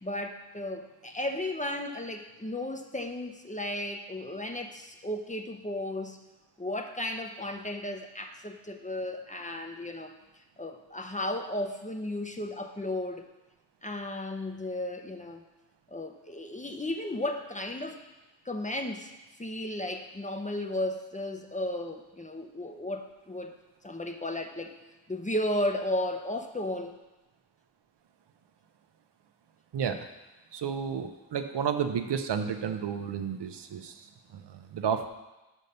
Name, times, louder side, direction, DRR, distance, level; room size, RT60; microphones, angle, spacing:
voice 1, 0.0-6.2 6.6-10.1 10.6-13.2 13.8-15.4 15.9-18.0 18.4-19.1 19.4-23.5 23.8-24.7 25.1-27.0, left 1 dB, 15° left, 5 dB, 0.8 m, -34 dB
voice 2, 29.7-30.1 30.5-35.1, right 7 dB, 65° right, 7 dB, 0.7 m, -32 dB
5.5 x 5.3 x 6.7 m, 1.0 s
cardioid pair, 50°, 44 cm